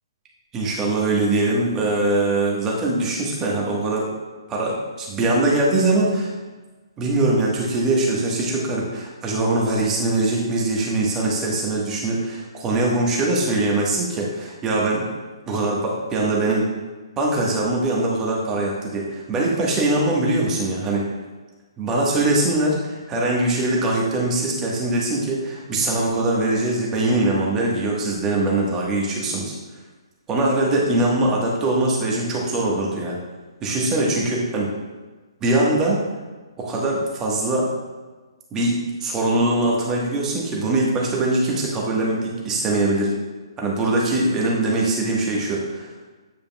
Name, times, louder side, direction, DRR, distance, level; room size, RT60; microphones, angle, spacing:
voice 1, 0.5-4.1 4.5-6.3 7.0-15.0 15.5-16.7 17.2-21.1 21.8-29.5 30.3-33.2 33.6-34.7 35.4-36.0 36.6-37.7 38.5-43.1 43.6-45.9, right 2 dB, 20° right, -3 dB, 1.3 m, -22 dB
9.3 x 5.1 x 2.3 m, 1.3 s
figure-of-eight pair, 130°, 3 cm